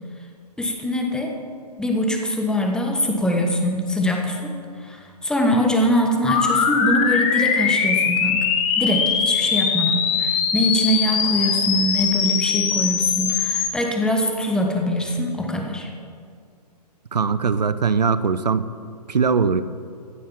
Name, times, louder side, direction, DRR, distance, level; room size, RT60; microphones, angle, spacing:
voice 1, 0.6-1.3 1.8-8.4 8.8-15.9, equal, 5° left, 2 dB, 1.3 m, -23 dB
sound 1, 6.3-13.7, left 6 dB, 25° left, 1.5 m, -21 dB
voice 2, 17.1-18.7 19.1-19.6, right 5 dB, 75° right, 13 dB, 0.7 m, -20 dB
15.0 x 7.3 x 7.3 m, 2.2 s
figure-of-eight pair, 130°, 21 cm